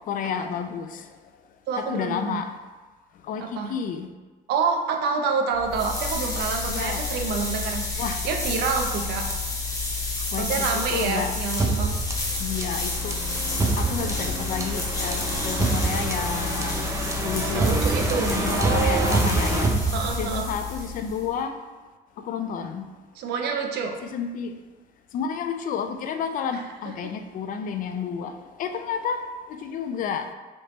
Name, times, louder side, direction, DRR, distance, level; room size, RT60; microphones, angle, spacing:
voice 1, 0.1-1.1 1.8-2.5 3.3-4.1 6.7-7.0 8.0-8.3 10.3-11.3 12.4-13.2 13.7-16.9 17.2-17.8 18.3-19.8 20.2-21.6 22.2-22.9 24.0-24.6 25.1-29.2 29.5-30.3, left 7 dB, 55° left, 0.4 m, -31 dB
voice 2, 1.7-2.4 3.4-3.8 4.5-9.3 10.4-12.4 17.5-19.2 19.9-20.5 23.2-23.9 26.5-26.6, right 5 dB, 75° right, 0.6 m, -28 dB
sound 1, 5.5-21.3, left 3 dB, 20° left, 0.9 m, -30 dB
sound 2, 11.6-20.5, right 3 dB, 15° right, 0.5 m, -26 dB
4.1 x 3.3 x 2.9 m
cardioid pair, 110°, 17 cm